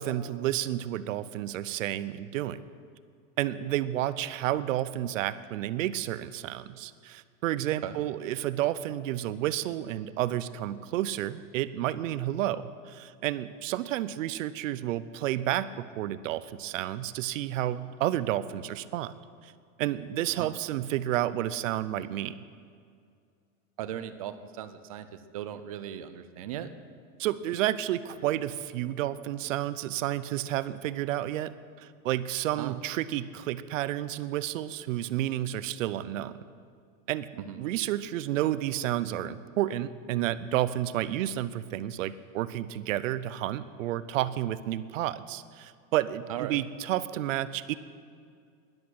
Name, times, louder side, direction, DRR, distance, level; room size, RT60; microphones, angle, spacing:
voice 1, 0.0-2.6 3.4-19.1 19.4-19.5 19.8-22.4 27.2-31.5 31.8-36.4 37.1-37.3 37.6-47.7, right 13 dB, 65° right, 15 dB, 0.7 m, -31 dB
voice 2, 23.8-26.7 32.6-32.7 37.4-37.6 46.3-46.6, right 11 dB, 30° right, 11 dB, 0.3 m, -37 dB
12.0 x 11.0 x 7.7 m, 2.2 s
supercardioid pair, 175°, 41 cm